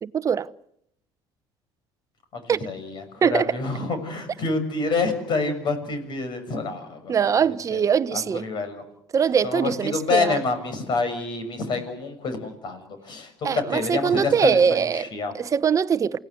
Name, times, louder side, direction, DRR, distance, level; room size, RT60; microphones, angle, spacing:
voice 1, 0.0-0.5 2.5-2.6 3.2-3.5 7.1-8.4 9.1-10.4 13.4-15.1 15.3-16.2, right 7 dB, 35° right, 0.9 m, -22 dB
voice 2, 2.3-7.8 8.1-8.8 9.4-15.3, left 4 dB, 50° left, 6.5 m, -28 dB
28.5 x 17.5 x 8.0 m
cardioid pair, 110°, 10 cm